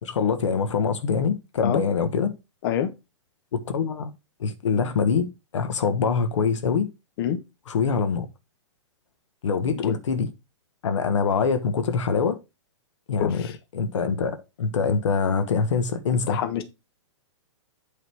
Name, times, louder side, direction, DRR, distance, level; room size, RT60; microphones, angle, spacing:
voice 1, 0.0-2.3 3.5-4.1 4.4-6.9 7.7-8.3 9.4-10.3 10.8-12.4 13.1-13.5 13.7-16.4, left 5 dB, 75° left, 1.4 m, -24 dB
voice 2, 13.2-13.5 16.1-16.6, left 10 dB, 50° left, 1.3 m, -27 dB
8.5 x 4.1 x 4.6 m
hypercardioid pair, 135°, 16 cm